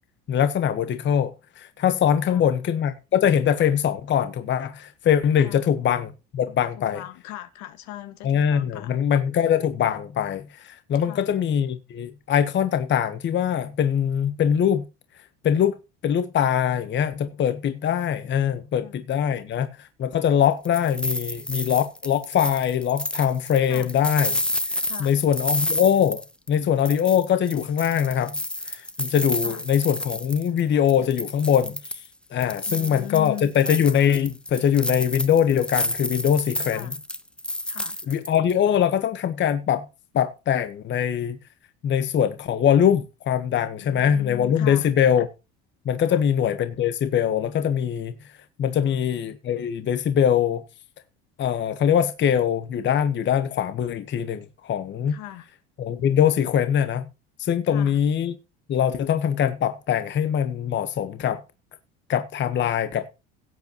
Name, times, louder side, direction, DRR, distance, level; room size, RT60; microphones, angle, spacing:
voice 1, 0.3-7.0 8.2-14.9 15.4-15.8 16.0-24.4 25.0-26.2 26.5-28.4 28.6-31.8 32.3-36.9 38.1-39.8 40.1-41.4 41.8-45.3 45.8-48.1 48.6-50.6 51.4-55.2 55.8-57.1 57.4-58.4 58.7-61.4 62.1-63.1, left 9 dB, 40° left, 1.2 m, -22 dB
voice 2, 6.8-8.9 11.0-11.3 18.7-19.0 23.7-23.9 24.8-25.1 29.4-29.6 32.7-33.5 36.7-37.0 37.7-38.0 43.8-44.9 46.1-46.3 48.7-49.0 55.1-55.5 57.6-58.0, left 14 dB, 70° left, 1.7 m, -39 dB
sound 1, 20.4-26.6 26.9-30.6 30.9-32.1 32.4-38.5, left 1 dB, 5° left, 0.8 m, -30 dB
17.0 x 8.3 x 3.0 m
supercardioid pair, 115°, 29 cm